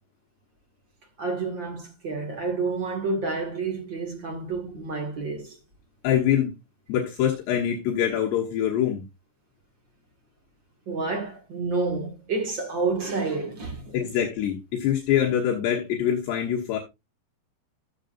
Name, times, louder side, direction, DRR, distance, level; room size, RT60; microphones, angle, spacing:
voice 1, 1.2-5.6 10.8-14.0, right 3 dB, 45° right, 1.6 m, -29 dB
voice 2, 6.0-6.5 6.9-9.0 13.9-16.8, left 10 dB, 70° left, 3.3 m, -24 dB
13.0 x 7.2 x 2.6 m
omnidirectional pair, 5.3 m